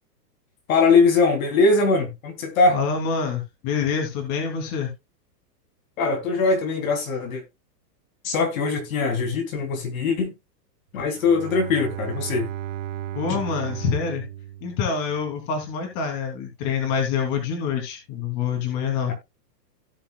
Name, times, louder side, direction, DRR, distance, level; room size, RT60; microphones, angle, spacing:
voice 1, 0.7-2.8 6.0-7.4 8.2-10.3 10.9-12.5 13.3-13.4 19.1-19.2, left 4 dB, 55° left, 3.3 m, -21 dB
voice 2, 2.7-4.9 13.1-14.2 14.6-19.1, left 6 dB, 30° left, 3.0 m, -26 dB
Bowed string instrument, 11.1-15.5, right 12 dB, 50° right, 0.9 m, -35 dB
17.0 x 5.7 x 2.3 m
supercardioid pair, 170°, 49 cm